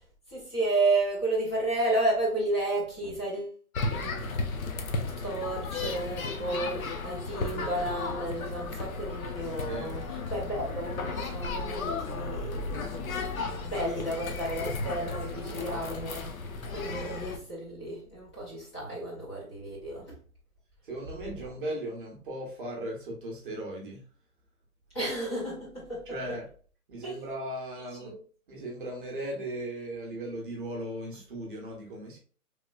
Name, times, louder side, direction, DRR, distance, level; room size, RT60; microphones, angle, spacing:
voice 1, 0.3-3.5 3.9-4.2 5.2-12.8 13.4-16.3 16.7-20.1 24.9-26.1 27.0-27.1 28.0-28.2, right 2 dB, 20° left, 0.7 m, -32 dB
sound 1, 3.7-17.4, left 3 dB, 65° left, 0.7 m, -34 dB
voice 2, 9.6-9.9 15.5-15.9 20.8-24.0 26.1-26.4 26.9-28.1 28.5-32.2, right 1 dB, 35° right, 0.7 m, -37 dB
3.1 x 2.8 x 2.3 m
hypercardioid pair, 155°, 44 cm